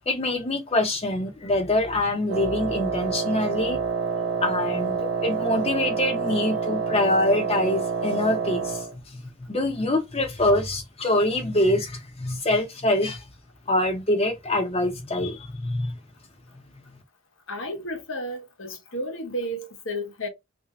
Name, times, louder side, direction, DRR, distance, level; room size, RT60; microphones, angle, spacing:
voice 1, 0.1-3.8 4.4-9.2 9.5-13.2 13.7-15.9, left 1 dB, 30° left, 0.9 m, -25 dB
Wind instrument woodwind instrument, 2.3-8.9, right 6 dB, 70° right, 0.9 m, -27 dB
voice 2, 17.5-20.3, equal, 70° left, 1.2 m, -32 dB
3.5 x 2.7 x 3.1 m
head